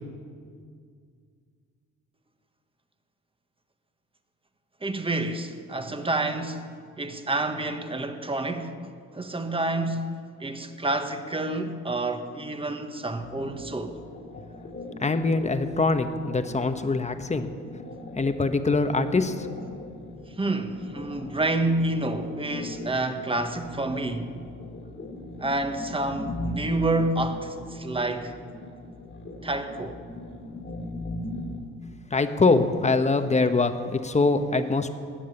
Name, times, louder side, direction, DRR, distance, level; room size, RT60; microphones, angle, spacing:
voice 1, 4.8-14.0 20.4-24.3 25.4-28.4 29.4-30.0, right 2 dB, 20° right, 1.4 m, -29 dB
sound 1, 13.2-31.6, left 1 dB, 40° left, 2.2 m, -39 dB
voice 2, 15.0-17.5 18.1-19.5 32.1-34.9, left 3 dB, 20° left, 1.1 m, -23 dB
17.5 x 7.3 x 9.9 m
cardioid pair, 90°, 30 cm